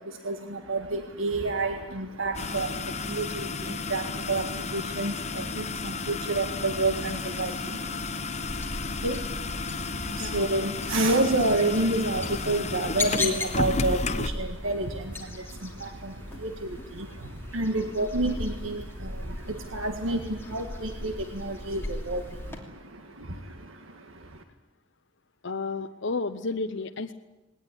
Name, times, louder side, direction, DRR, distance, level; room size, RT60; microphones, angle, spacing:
voice 1, 0.0-24.4, right 2 dB, 90° right, 6 dB, 1.7 m, -30 dB
sound 1, 2.3-14.3, left 4 dB, 35° left, 0.9 m, -33 dB
sound 2, 8.4-22.6, left 2 dB, 10° left, 2.9 m, -37 dB
voice 2, 25.4-27.1, left 3 dB, 60° left, 6 dB, 0.8 m, -31 dB
20.0 x 18.5 x 10.0 m, 1.1 s
head